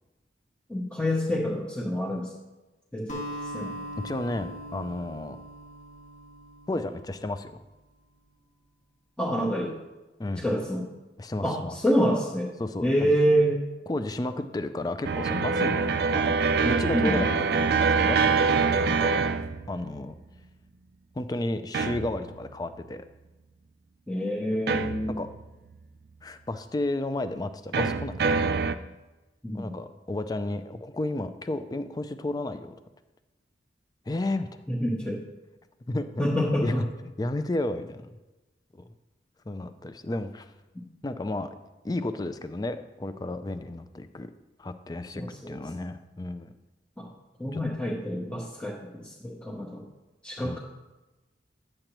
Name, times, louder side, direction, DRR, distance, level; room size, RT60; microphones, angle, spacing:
voice 1, 0.7-2.3 2.9-3.8 9.2-9.8 10.4-10.8 11.4-12.5 12.8-13.6 16.9-17.2 24.1-25.2 29.4-29.7 34.7-35.2 36.2-36.8 40.7-40.8 45.1-45.5 47.0-47.1 47.4-49.8 50.2-50.6, equal, 5° left, -5 dB, 0.8 m, -27 dB
Acoustic guitar, 3.1-7.6, equal, 40° left, 1.3 m, -40 dB
voice 2, 4.0-5.4 6.7-7.5 10.2-10.4 11.2-11.8 12.6-13.1 13.9-19.2 19.7-20.1 21.2-23.1 25.1-25.3 26.2-28.5 29.5-32.7 34.1-34.6 35.9-36.1 36.6-36.7 37.2-38.2 38.8-38.9 39.5-40.5 41.0-41.5 41.8-44.3 44.6-46.5 47.5-47.6 50.4-50.6, left 2 dB, 20° left, 10 dB, 0.4 m, -32 dB
sound 1, 15.0-20.1 21.7-22.5 24.7-25.4 27.7-28.7, right 5 dB, 60° right, 0.4 m, -25 dB
10.0 x 7.6 x 3.0 m, 1.1 s
head